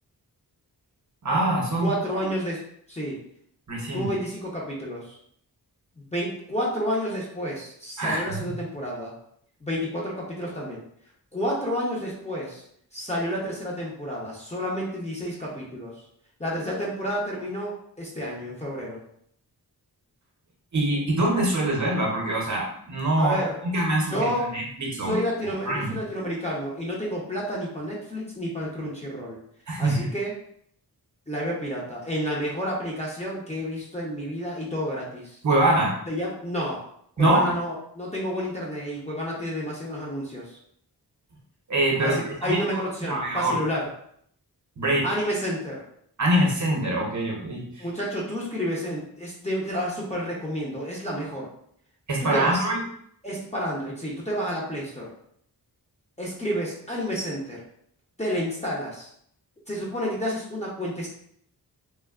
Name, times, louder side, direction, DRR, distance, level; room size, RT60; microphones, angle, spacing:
voice 1, 1.2-1.9 3.7-4.1 8.0-8.5 20.7-23.4 23.6-25.2 25.7-26.0 29.7-30.1 35.4-36.0 37.2-37.5 41.7-42.8 43.1-43.6 44.8-45.1 46.2-47.9 52.1-52.8, right 1 dB, 50° right, -1 dB, 0.7 m, -24 dB
voice 2, 1.8-3.2 3.9-5.1 6.1-9.1 9.6-10.8 11.3-12.6 12.9-15.9 16.4-19.0 23.2-23.6 24.1-24.5 25.0-29.4 29.8-30.3 31.3-35.4 36.1-36.8 37.2-40.5 42.0-43.9 45.0-45.8 47.8-51.5 52.3-52.7 53.2-55.1 56.2-57.6 58.2-59.1 59.7-61.1, equal, 20° left, -4 dB, 0.6 m, -30 dB
3.3 x 2.0 x 2.3 m, 0.66 s
wide cardioid pair, 125°, 39 cm